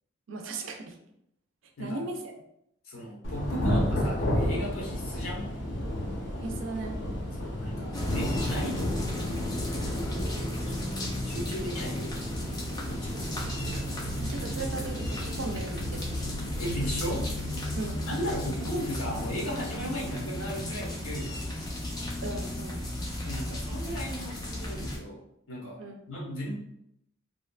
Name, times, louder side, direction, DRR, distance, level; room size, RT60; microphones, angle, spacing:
voice 1, 0.3-1.0 1.8-2.3 6.4-7.0 14.2-16.4 17.8-18.0 22.2-22.8 25.8-26.0, right 3 dB, 70° right, 4 dB, 0.4 m, -37 dB
voice 2, 2.8-5.5 7.3-9.0 9.9-10.2 10.7-10.9 11.2-12.3 12.8-13.2 16.6-17.3 18.1-21.4 23.2-25.2 25.5-25.8 26.1-26.5, equal, 85° left, -3 dB, 0.9 m, -36 dB
Thunder / Rain, 3.2-19.5, left 1 dB, 60° left, 0.6 m, -34 dB
sound 1, 7.9-25.0, left 1 dB, 20° left, 0.3 m, -34 dB
2.7 x 2.3 x 2.2 m, 0.78 s
head